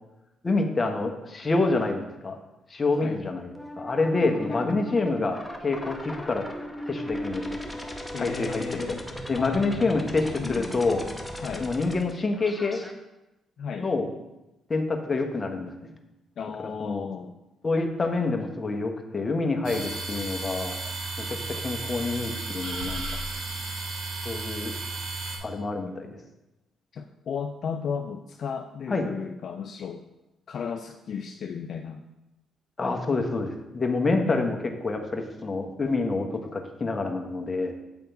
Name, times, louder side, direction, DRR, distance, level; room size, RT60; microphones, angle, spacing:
voice 1, 0.4-2.4 2.7-6.5 6.9-7.6 8.2-9.0 9.3-11.0 11.6-12.8 13.8-14.1 14.7-15.9 16.8-17.1 17.6-20.8 21.2-23.0 24.2-24.7 25.4-26.2 28.9-29.1 32.8-34.6 34.8-37.7, left 3 dB, 30° left, 4 dB, 0.9 m, -27 dB
sound 1, 3.6-12.9, equal, 5° left, 0.8 m, -37 dB
voice 2, 8.1-9.0 9.4-10.0 10.4-10.8 11.4-11.7 13.6-13.9 16.4-17.3 26.9-30.0 30.5-32.0 34.3-34.5, left 6 dB, 60° left, 4 dB, 0.4 m, -34 dB
sound 2, 19.6-25.4, right 3 dB, 65° right, 1.4 m, -33 dB
8.0 x 3.5 x 4.5 m, 0.96 s
cardioid pair, 90°, 0 cm